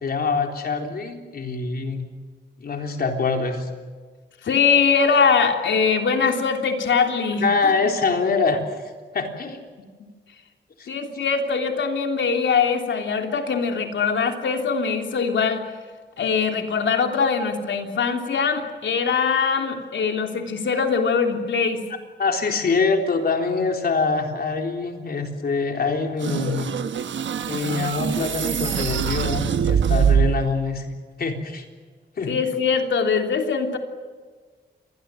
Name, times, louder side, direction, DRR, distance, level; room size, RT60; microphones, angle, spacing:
voice 1, 0.0-2.1 2.6-3.7 7.4-8.6 9.1-9.6 10.8-10.9 22.2-26.7 27.5-30.9 31.2-31.7 32.2-32.3, left 4 dB, 55° left, 3 dB, 3.8 m, -24 dB
voice 2, 4.4-7.7 10.9-15.6 16.2-21.8 32.2-33.8, left 5 dB, 85° left, 4 dB, 3.3 m, -22 dB
sound 1, 26.2-30.5, right 8 dB, 85° right, 1.2 m, -23 dB
27.0 x 21.5 x 7.6 m, 1.5 s
wide cardioid pair, 150°, 19 cm